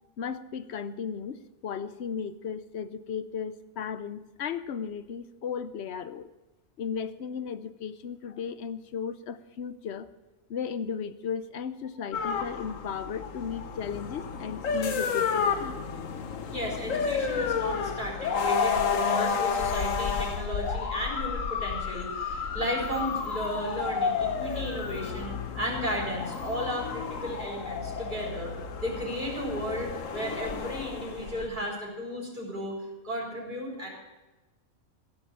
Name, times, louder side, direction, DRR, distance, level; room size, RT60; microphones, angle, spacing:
voice 1, 0.2-6.3 6.8-10.1 10.5-15.8 19.2-19.3, left 7 dB, 60° left, 13 dB, 0.9 m, -35 dB
sound 1, 12.1-31.5, left 6 dB, 80° left, 1.4 m, -31 dB
voice 2, 16.5-28.5 28.8-32.7 33.0-33.9, equal, 40° right, -3 dB, 4.2 m, -34 dB
15.0 x 7.8 x 7.3 m, 1.1 s
omnidirectional pair, 1.3 m